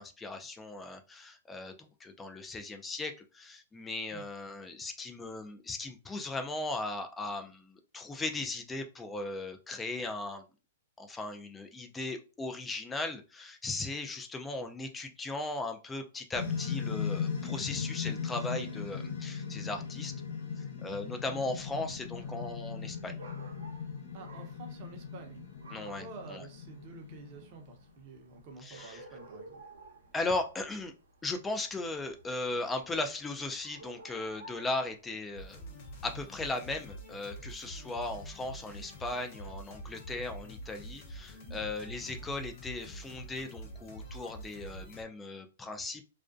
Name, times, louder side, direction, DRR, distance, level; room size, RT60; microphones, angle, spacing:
voice 1, 0.0-10.4 11.0-20.1 20.6-23.2 25.7-26.4 28.6-29.0 30.1-30.9 31.2-35.6 36.0-46.0, left 2 dB, 10° left, 6 dB, 0.4 m, -37 dB
sound 1, 16.3-27.8, left 6 dB, 75° left, 0.8 m, -38 dB
sound 2, 21.5-36.3, right 2 dB, 80° right, 0.8 m, -55 dB
voice 2, 24.1-25.4 25.8-29.6 41.4-41.7 42.0-42.1, right 4 dB, 40° right, 4 dB, 0.7 m, -49 dB
sound 3, 35.3-45.0, right 1 dB, 45° left, 0.7 m, -46 dB
2.4 x 2.2 x 2.5 m, 0.32 s
hypercardioid pair, 140°, 0 cm